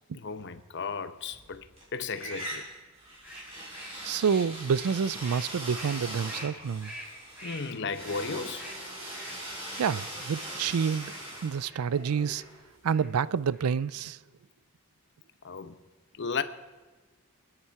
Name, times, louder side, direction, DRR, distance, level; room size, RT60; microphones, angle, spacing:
voice 1, 0.1-2.6 7.4-8.7 15.4-15.8 16.2-16.4, left 5 dB, 55° left, 0.9 m, -35 dB
sound 1, 1.2-1.8 2.2-13.0, right 1 dB, 30° right, 4.7 m, -41 dB
sound 2, 3.2-11.2 11.6-11.9 12.2-12.5 12.9-13.1 13.4-13.9, equal, 10° right, 4.7 m, -47 dB
voice 2, 4.0-6.9 9.8-11.1 11.4-12.4 12.8-14.2, right 6 dB, 85° right, 0.4 m, -28 dB
28.0 x 9.9 x 4.7 m
head